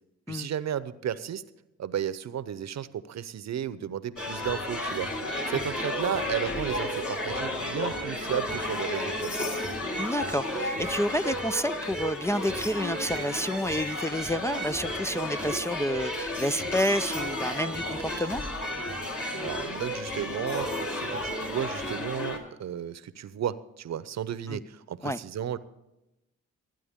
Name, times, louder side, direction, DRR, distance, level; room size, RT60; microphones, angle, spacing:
voice 1, 0.3-1.4 1.8-5.1 5.5-9.6 19.4-25.6, right 9 dB, 60° right, 0.8 m, -33 dB
sound 1, 4.2-22.4, left 1 dB, 45° left, 3.5 m, -32 dB
voice 2, 10.0-18.4 24.5-24.6 25.0-25.2, equal, 10° left, 0.4 m, -29 dB
20.5 x 9.3 x 3.6 m
hypercardioid pair, 45°, 31 cm